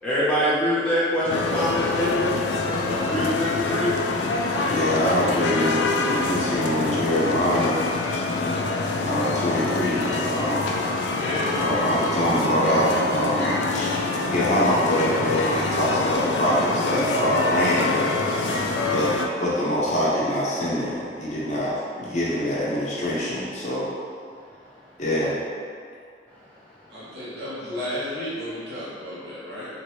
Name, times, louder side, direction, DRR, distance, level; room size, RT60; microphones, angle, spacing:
voice 1, 0.0-2.3 2.8-4.0 13.4-13.5, equal, 5° left, -11 dB, 0.7 m, -24 dB
sound 1, 1.3-19.3, left 3 dB, 90° left, 0.3 m, -25 dB
voice 2, 4.7-7.8 9.0-10.7 11.6-18.6 18.9-19.1 19.4-23.9 25.0-25.4, equal, 40° left, -7 dB, 0.6 m, -24 dB
voice 3, 11.2-11.6 26.9-29.7, left 1 dB, 70° right, -10 dB, 1.2 m, -32 dB
2.8 x 2.5 x 3.0 m, 2.1 s
head